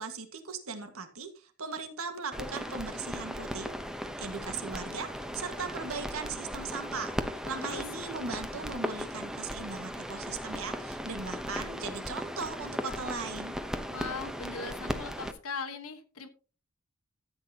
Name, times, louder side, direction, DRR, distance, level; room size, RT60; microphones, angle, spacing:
voice 1, 0.0-3.7 4.2-7.2 7.4-13.5, right 4 dB, 70° right, 7 dB, 1.7 m, -38 dB
sound 1, 2.3-15.3, equal, 5° right, 0.8 m, -37 dB
voice 2, 13.9-16.3, left 4 dB, 70° left, 6 dB, 1.3 m, -39 dB
14.0 x 8.5 x 2.8 m, 0.35 s
head